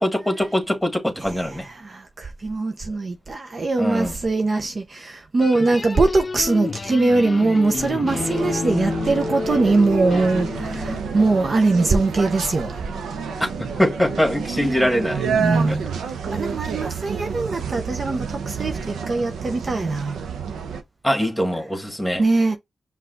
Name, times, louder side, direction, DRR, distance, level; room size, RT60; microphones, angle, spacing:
voice 1, 0.0-1.7 3.8-4.2 13.8-15.3 15.7-15.8 21.0-22.2, equal, ahead, 1.7 m, -22 dB
voice 2, 1.2-12.8 15.4-15.8 16.3-20.2 22.2-22.6, right 3 dB, 50° right, 0.7 m, -22 dB
Short Rock instrumental study, 5.4-11.0, left 4 dB, 45° left, 0.5 m, -29 dB
sound 1, 8.1-20.8, right 6 dB, 90° right, 0.6 m, -29 dB
5.5 x 2.4 x 3.8 m
cardioid pair, 50°, 0 cm